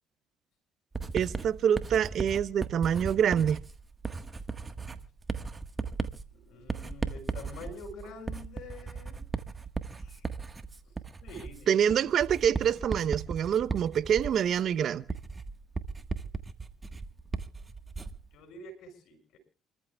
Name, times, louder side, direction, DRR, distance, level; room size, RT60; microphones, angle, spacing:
Writing, 0.9-18.3, right 4 dB, 25° right, 1.4 m, -37 dB
voice 1, 1.1-3.6 11.7-15.0, right 8 dB, 60° right, 0.8 m, -26 dB
voice 2, 6.3-9.2 10.0-10.3 10.8-10.9 11.2-12.0 18.3-19.4, left 2 dB, 70° left, 6.5 m, -47 dB
28.5 x 14.0 x 2.3 m
supercardioid pair, 75°, 0 cm